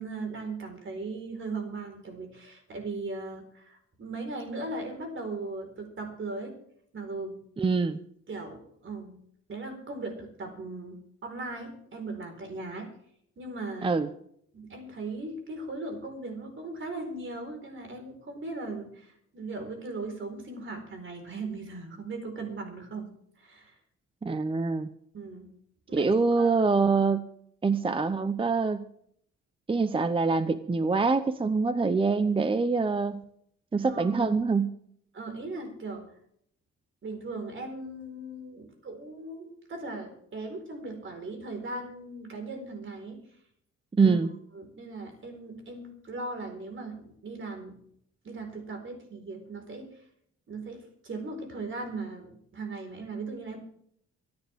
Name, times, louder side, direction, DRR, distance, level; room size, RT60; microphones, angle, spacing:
voice 1, 0.0-6.5 6.9-7.4 8.3-9.2 9.5-12.9 13.4-13.9 14.5-23.1 23.4-23.7 25.1-25.5 25.9-26.1 26.4-26.6 33.9-34.3 35.1-36.1 37.0-43.2 44.0-44.2 44.6-47.8 48.2-50.0 50.5-53.6, right 3 dB, 45° right, 5 dB, 4.5 m, -38 dB
voice 2, 7.6-8.0 13.8-14.1 24.2-24.9 25.9-27.2 27.6-28.9 29.7-33.2 33.7-34.7 43.9-44.3, right 4 dB, 20° right, 11 dB, 0.7 m, -25 dB
25.0 x 10.5 x 3.5 m, 0.68 s
cardioid pair, 140°, 29 cm